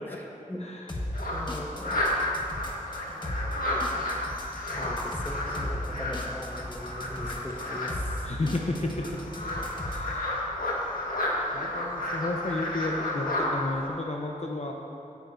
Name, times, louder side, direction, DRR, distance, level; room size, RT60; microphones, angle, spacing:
voice 1, 0.6-0.9 8.2-9.1 9.8-10.5 11.5-14.7, left 2 dB, 50° left, 0 dB, 0.9 m, -32 dB
sound 1, 0.9-10.1, left 1 dB, 35° left, 1.4 m, -37 dB
sound 2, 1.1-13.9, left 1 dB, 85° left, 1.6 m, -32 dB
voice 2, 1.3-1.9 3.9-4.0 4.8-8.3, equal, 15° left, 0 dB, 1.3 m, -39 dB
18.0 x 9.2 x 2.7 m, 2.6 s
wide cardioid pair, 75°, 14 cm